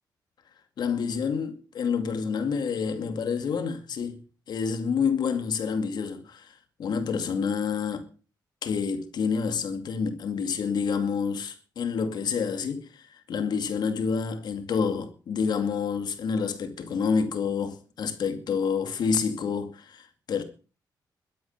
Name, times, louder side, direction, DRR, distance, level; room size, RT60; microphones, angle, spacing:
voice 1, 0.8-4.2 4.5-8.1 8.6-20.4, left 6 dB, 70° left, 2.3 m, -28 dB
13.0 x 9.1 x 8.2 m
cardioid pair, 125°, 8 cm